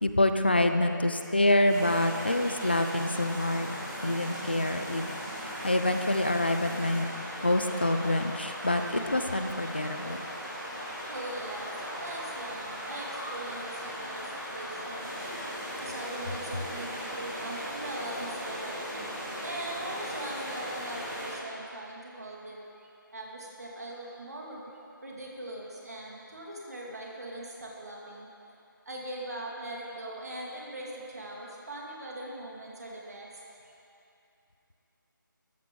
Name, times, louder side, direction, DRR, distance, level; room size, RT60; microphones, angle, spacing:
voice 1, 0.0-3.7 4.0-5.1 5.4-7.1 7.4-10.2, left 1 dB, 30° left, 7 dB, 0.5 m, -26 dB
sound 1, 1.6-21.3, equal, 10° right, 2.4 m, -38 dB
voice 2, 11.1-15.1 15.8-19.1 19.4-22.6 23.1-24.7 25.0-28.3 28.9-33.3 33.6-33.7, right 1 dB, 50° right, -3 dB, 2.4 m, -41 dB
14.5 x 13.5 x 3.8 m, 2.8 s
figure-of-eight pair, 180°, 11 cm